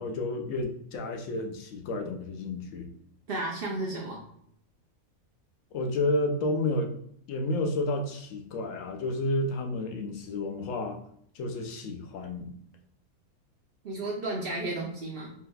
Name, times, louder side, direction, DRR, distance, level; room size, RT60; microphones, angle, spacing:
voice 1, 0.0-2.9 5.7-6.9 7.3-11.0 11.3-12.5, left 2 dB, 70° left, 4 dB, 0.9 m, -31 dB
voice 2, 3.3-4.2 13.8-15.3, right 2 dB, 70° right, -1 dB, 0.5 m, -33 dB
3.6 x 2.7 x 2.2 m, 0.69 s
omnidirectional pair, 1.5 m